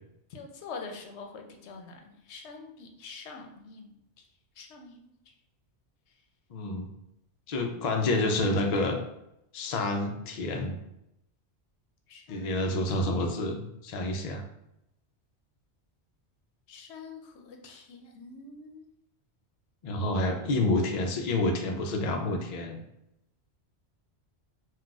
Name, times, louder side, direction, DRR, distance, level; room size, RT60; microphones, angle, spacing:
voice 1, 0.3-3.9 4.6-5.1 7.7-8.0 12.1-12.8 13.1-13.5 16.7-18.8, left 4 dB, 75° left, 3 dB, 0.8 m, -45 dB
voice 2, 6.5-6.9 7.5-9.0 9.5-10.8 12.3-14.4 19.8-22.8, left 2 dB, 60° left, 3 dB, 0.4 m, -28 dB
3.8 x 2.3 x 2.3 m, 0.83 s
omnidirectional pair, 1.2 m